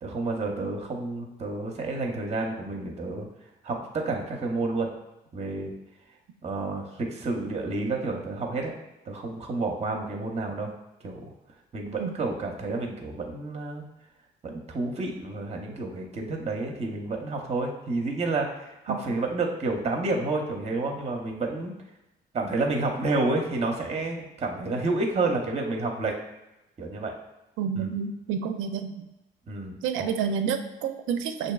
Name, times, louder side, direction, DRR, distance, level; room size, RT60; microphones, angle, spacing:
voice 1, 0.0-3.3 3.6-4.9 5.3-5.7 6.4-8.7 9.0-10.7 11.0-11.3 11.7-13.8 14.4-21.8 22.3-26.2 26.8-27.1 27.7-27.9 29.5-30.1, right 3 dB, 35° right, 2 dB, 0.7 m, -30 dB
voice 2, 27.6-29.1 29.8-31.5, right 7 dB, 90° right, 7 dB, 0.4 m, -29 dB
5.8 x 2.6 x 2.3 m, 0.95 s
cardioid pair, 90°, 20 cm